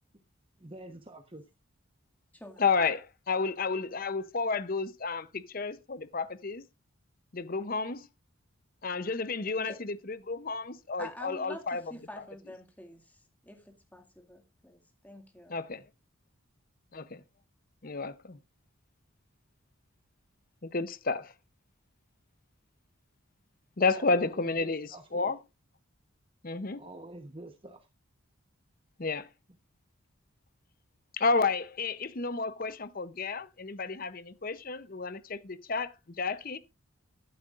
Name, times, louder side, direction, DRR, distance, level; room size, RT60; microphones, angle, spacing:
voice 1, 0.6-1.4 24.0-25.3 26.7-27.9, right 1 dB, 25° right, 1.0 m, -47 dB
voice 2, 2.6-6.7 7.3-8.1 8.8-11.8 15.5-15.8 16.9-17.2 17.8-18.4 20.7-21.3 23.8-25.4 26.4-26.8 29.0-29.3 31.1-36.6, left 4 dB, 40° left, 0.7 m, -31 dB
voice 3, 11.0-15.6, left 1 dB, 5° left, 2.1 m, -47 dB
13.0 x 11.5 x 2.5 m
head